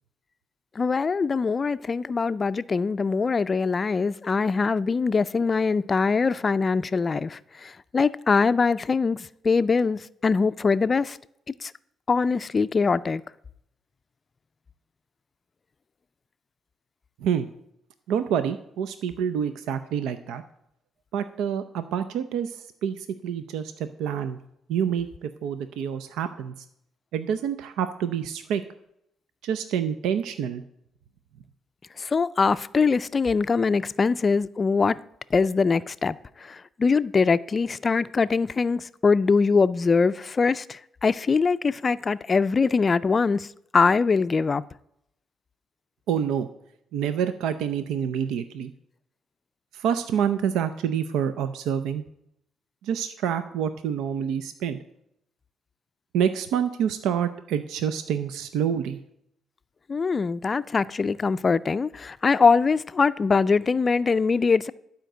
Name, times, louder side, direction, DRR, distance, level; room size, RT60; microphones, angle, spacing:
voice 1, 0.8-11.2 11.6-11.7 12.1-13.2 32.0-35.0 35.3-43.5 43.7-44.6 59.9-64.7, left 4 dB, 35° left, 0.4 m, -23 dB
voice 2, 18.1-20.4 21.1-24.4 24.7-26.5 27.1-28.6 29.4-30.6 46.1-46.5 46.9-48.7 49.7-52.0 52.8-54.8 56.1-59.0, right 8 dB, 90° right, 0.5 m, -27 dB
11.5 x 5.1 x 7.8 m
cardioid pair, 90°, 0 cm